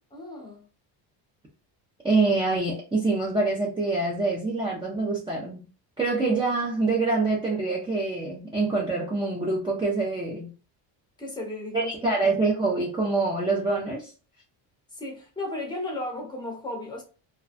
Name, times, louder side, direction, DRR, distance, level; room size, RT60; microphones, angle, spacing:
voice 1, 0.1-0.7 11.2-11.9 14.9-17.0, left 2 dB, 10° left, 0.9 m, -34 dB
voice 2, 2.0-5.6 6.0-10.5 11.7-14.1, right 3 dB, 10° right, 0.5 m, -25 dB
2.5 x 2.1 x 2.5 m
cardioid pair, 110°, 47 cm